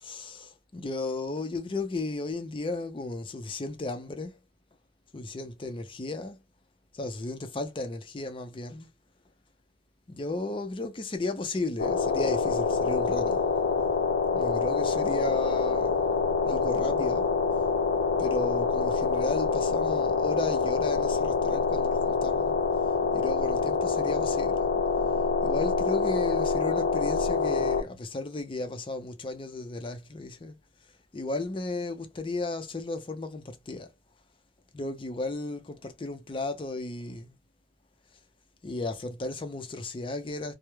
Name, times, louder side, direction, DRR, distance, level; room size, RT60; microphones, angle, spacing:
voice 1, 0.0-4.4 5.1-6.4 6.9-8.9 10.1-13.5 14.3-16.1 16.5-17.3 18.2-22.6 23.1-24.7 25.4-30.6 31.1-33.9 34.7-37.4 38.6-40.5, left 2 dB, 30° left, 0.5 m, -34 dB
sound 1, 11.8-27.8, left 4 dB, 80° left, 0.6 m, -26 dB
2.2 x 2.1 x 3.0 m
head